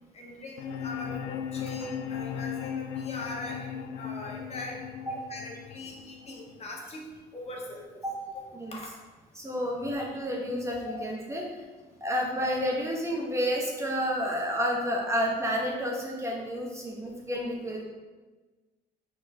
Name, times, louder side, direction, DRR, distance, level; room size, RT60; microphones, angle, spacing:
voice 1, 0.1-4.8 5.1-7.0 7.3-7.9 8.3-8.4 8.7-8.9, left 2 dB, 40° left, -2 dB, 1.5 m, -41 dB
sound 1, 0.6-6.6, left 8 dB, 90° left, 0.5 m, -37 dB
voice 2, 9.3-11.6 12.0-17.8, equal, 15° right, -1 dB, 1.0 m, -30 dB
4.7 x 4.3 x 5.6 m, 1.3 s
cardioid pair, 110°, 17 cm